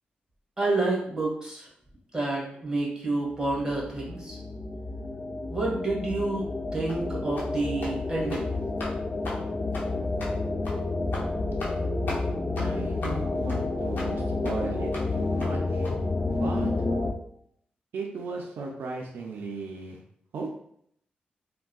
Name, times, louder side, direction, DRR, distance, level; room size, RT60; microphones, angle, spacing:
voice 1, 0.6-1.7 2.1-4.4 5.5-8.5, right 2 dB, 20° right, -4 dB, 1.4 m, -29 dB
sound 1, 3.3-17.1, left 2 dB, 40° left, 0.5 m, -30 dB
sound 2, 6.9-7.0 7.4-7.5 7.8-8.0 8.2-8.5 8.8-8.9 9.2-9.4 9.7-9.9 10.2-10.3 10.6-10.8 11.1-11.3 11.6-11.8 12.1-12.2 12.6-12.7 13.0-13.2 13.5-13.6 14.0-14.1 14.4-14.6 14.9-15.1 15.4-15.5 15.8-15.9, left 2 dB, 70° left, 0.8 m, -37 dB
voice 2, 12.6-15.9 16.3-16.7 17.9-20.0 20.3-20.5, right 3 dB, 80° right, 0 dB, 0.4 m, -36 dB
3.4 x 2.1 x 2.3 m, 0.69 s
cardioid pair, 60°, 3 cm